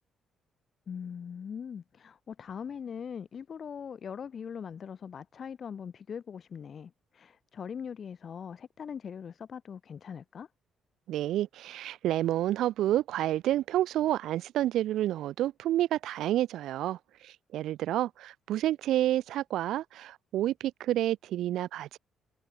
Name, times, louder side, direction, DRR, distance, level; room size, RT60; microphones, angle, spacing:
voice 1, 0.9-10.5, left 7 dB, 50° left, 1.5 m, -41 dB
voice 2, 11.1-22.0, right 13 dB, 80° right, 1.2 m, -29 dB
cardioid pair, 90°, 0 cm